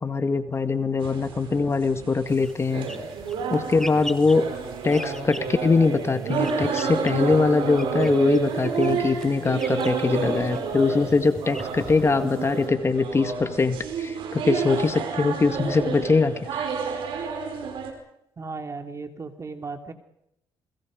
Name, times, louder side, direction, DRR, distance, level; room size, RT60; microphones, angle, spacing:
voice 1, 0.0-2.9 3.5-4.4 4.8-16.7, left 4 dB, 30° left, 9 dB, 1.9 m, -22 dB
sound 1, 1.0-17.9, right 5 dB, 75° right, 4.9 m, -30 dB
sound 2, 2.3-12.7, left 1 dB, 5° left, 2.4 m, -43 dB
voice 2, 18.4-19.9, right 4 dB, 35° right, 7 dB, 2.8 m, -36 dB
29.0 x 22.0 x 5.2 m, 0.80 s
cardioid pair, 80°, 9 cm